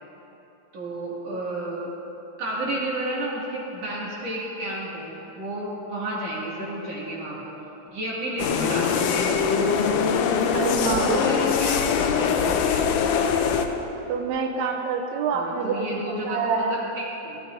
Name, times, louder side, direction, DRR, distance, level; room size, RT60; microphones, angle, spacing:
voice 1, 0.7-1.9 2.4-7.5 7.9-9.9 10.9-11.9 12.2-13.0 15.3-17.4, right 1 dB, 50° right, -6 dB, 3.2 m, -31 dB
sound 1, 8.4-13.7, left 6 dB, 80° left, 2.1 m, -22 dB
voice 2, 10.5-11.5 14.1-16.7, right 5 dB, 75° right, 2 dB, 1.7 m, -27 dB
18.5 x 13.0 x 2.6 m, 3.0 s
omnidirectional pair, 3.8 m